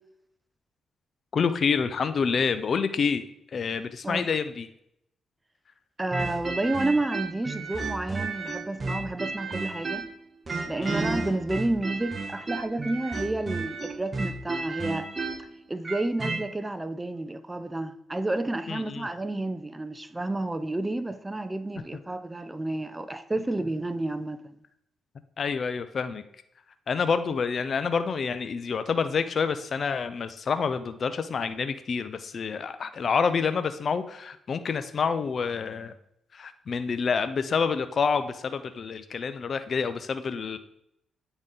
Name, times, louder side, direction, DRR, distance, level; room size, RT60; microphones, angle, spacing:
voice 1, 1.3-3.2 3.5-4.7 10.8-11.1 18.7-19.1 25.4-26.2 26.9-35.9 36.3-40.6, left 5 dB, 55° left, 0.4 m, -28 dB
voice 2, 6.0-10.0 10.7-15.1 15.7-24.6, right 2 dB, 15° right, 0.6 m, -30 dB
sound 1, 6.1-10.2 10.5-16.4, right 3 dB, 35° right, 1.0 m, -32 dB
8.9 x 4.0 x 3.7 m
cardioid pair, 75°, 0 cm